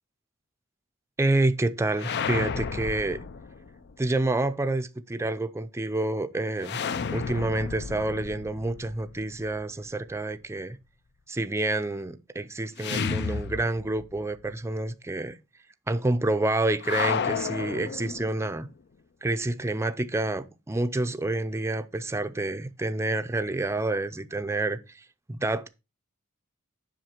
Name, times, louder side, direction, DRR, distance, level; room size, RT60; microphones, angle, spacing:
voice 1, 1.2-3.2 4.0-6.8 7.1-10.8 11.3-15.4 15.9-18.7 19.2-25.7, right 2 dB, 15° right, 0.5 m, -28 dB
sound 1, 1.9-3.9 6.6-9.6 12.8-14.2 14.4-14.5 16.8-18.6, left 6 dB, 55° left, 0.5 m, -32 dB
7.7 x 5.8 x 4.4 m
head